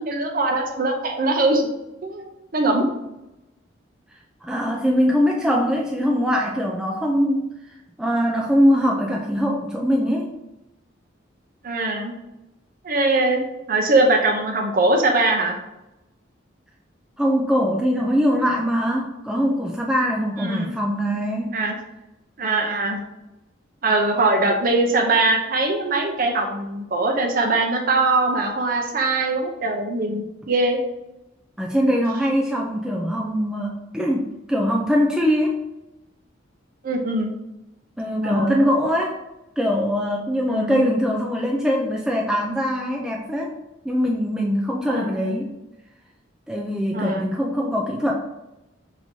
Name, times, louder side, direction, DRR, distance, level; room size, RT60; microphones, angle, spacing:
voice 1, 0.1-1.7 2.0-2.9 11.6-12.1 12.8-13.4 13.7-15.6 20.4-20.7 21.5-21.7 22.4-23.0 23.8-30.8 36.8-37.3 38.2-38.7 40.5-40.9 44.9-45.4 46.9-47.3, right 2 dB, 45° right, 2 dB, 0.6 m, -22 dB
voice 2, 4.4-7.5 8.0-10.3 17.2-21.5 31.6-35.6 38.0-39.2 39.6-43.5 43.8-45.5 46.5-48.1, equal, 5° right, -2 dB, 0.3 m, -22 dB
5.8 x 2.9 x 2.7 m, 0.95 s
head